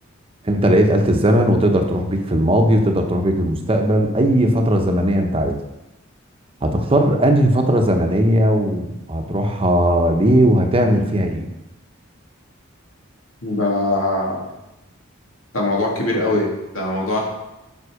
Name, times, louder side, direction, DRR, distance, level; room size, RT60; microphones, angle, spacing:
voice 1, 0.4-5.6 6.6-11.4, right 1 dB, 25° right, 4 dB, 0.9 m, -17 dB
voice 2, 13.4-14.5 15.5-17.2, left 2 dB, 80° left, -1 dB, 2.1 m, -21 dB
8.0 x 5.4 x 4.8 m, 0.93 s
head